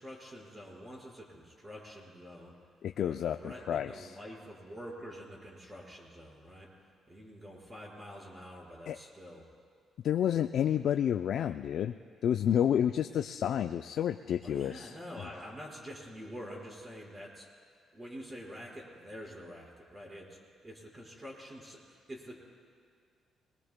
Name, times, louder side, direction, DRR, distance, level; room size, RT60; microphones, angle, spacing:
voice 1, 0.0-2.5 3.0-9.5 14.4-17.5 17.9-22.3, equal, 25° right, -4 dB, 4.8 m, -47 dB
voice 2, 2.8-4.2 8.9-9.0 10.0-11.9 12.2-15.0, left 9 dB, 70° left, 7 dB, 0.3 m, -30 dB
22.0 x 21.5 x 2.2 m, 2.1 s
cardioid pair, 90°, 0 cm